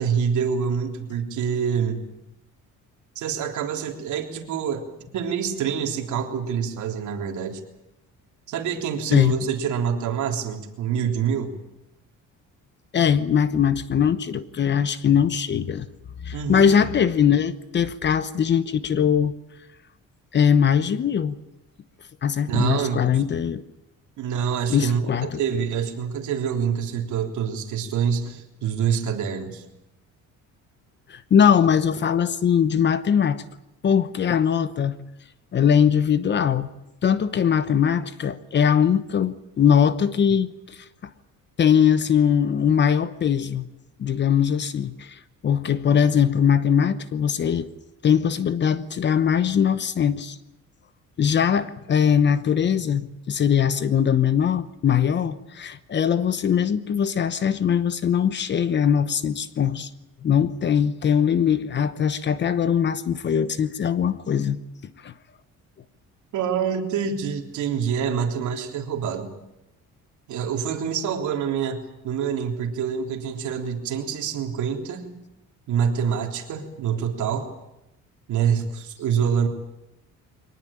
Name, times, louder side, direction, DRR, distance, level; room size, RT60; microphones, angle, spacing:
voice 1, 0.0-2.0 3.2-4.8 5.1-7.6 8.5-11.5 16.3-16.7 22.5-23.2 24.2-25.0 25.4-29.6 66.3-69.3 70.3-75.1 75.7-77.5 78.3-79.5, right 7 dB, 65° right, 3.6 m, -26 dB
voice 2, 12.9-15.9 16.2-19.3 20.3-21.4 22.2-23.6 24.7-25.4 31.1-33.4 33.8-35.0 35.5-36.7 37.0-40.9 41.6-43.7 44.0-47.7 48.0-50.4 51.2-59.9 60.2-65.1, left 8 dB, 35° left, 0.9 m, -21 dB
23.5 x 19.0 x 8.9 m
cardioid pair, 160°, 32 cm